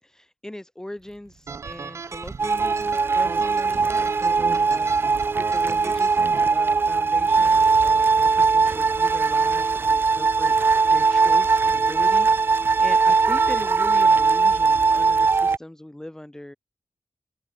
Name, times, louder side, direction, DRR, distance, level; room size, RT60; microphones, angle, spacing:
voice 1, 0.0-6.2 6.5-16.6, left 1 dB, 10° left, 1.2 m, -39 dB
Liquid, 0.9-9.2, right 6 dB, 85° right, 7.1 m, -59 dB
sound 1, 1.5-6.5, right 5 dB, 60° right, 2.5 m, -36 dB
sound 2, 2.4-15.6, right 4 dB, 45° right, 0.4 m, -20 dB
open air
wide cardioid pair, 110°, 5 cm